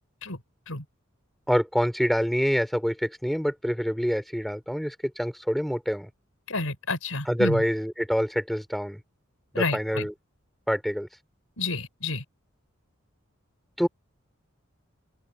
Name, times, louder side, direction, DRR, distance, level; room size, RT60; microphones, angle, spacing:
voice 1, 1.5-6.1 7.3-9.0 9.5-10.1 10.7-11.1 13.8-13.9, equal, ahead, 4.1 m, -26 dB
voice 2, 6.5-7.6 9.5-10.1 11.6-12.2, left 3 dB, 80° left, 4.2 m, -30 dB
open air
head